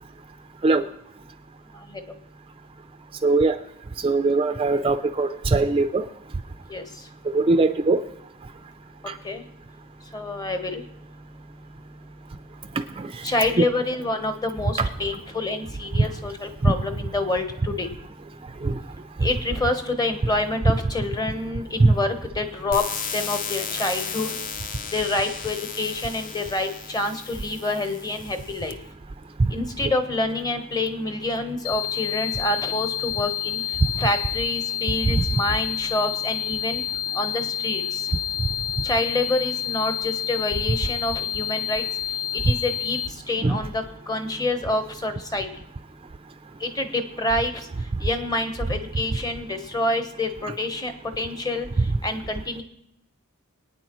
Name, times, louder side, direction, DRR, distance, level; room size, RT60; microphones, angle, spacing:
voice 1, 3.2-3.6 4.0-6.0 7.3-8.0 14.8-14.9 18.6-18.7 21.8-21.9 43.4-43.6, right 3 dB, 25° right, 9 dB, 0.4 m, -20 dB
voice 2, 10.1-10.8 13.2-17.9 19.2-22.8 23.1-24.3 24.9-28.8 29.5-33.6 34.0-36.8 37.1-37.8 38.8-41.8 42.4-43.0 43.3-45.5 46.6-47.7 48.0-51.7 52.0-52.6, left 2 dB, 20° left, 8 dB, 0.9 m, -27 dB
sound 1, 22.7-28.7, left 6 dB, 40° left, 0.6 m, -34 dB
sound 2, 31.6-43.1, left 11 dB, 80° left, 0.4 m, -29 dB
23.5 x 9.2 x 3.0 m, 0.81 s
head